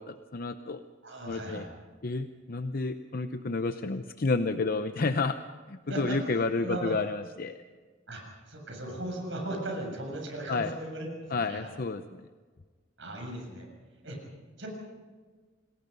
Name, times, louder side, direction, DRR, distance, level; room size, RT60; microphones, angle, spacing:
voice 1, 0.0-0.8 1.3-1.7 2.0-5.4 5.7-7.6 10.5-10.7 11.3-12.3, left 3 dB, 50° left, 9 dB, 0.7 m, -30 dB
voice 2, 1.0-1.7 5.9-6.2 6.6-6.9 8.1-8.2 8.5-11.6 13.0-13.7 14.0-14.2 14.6-14.7, right 1 dB, 70° right, 1 dB, 7.2 m, -37 dB
28.5 x 19.5 x 5.4 m, 1.4 s
head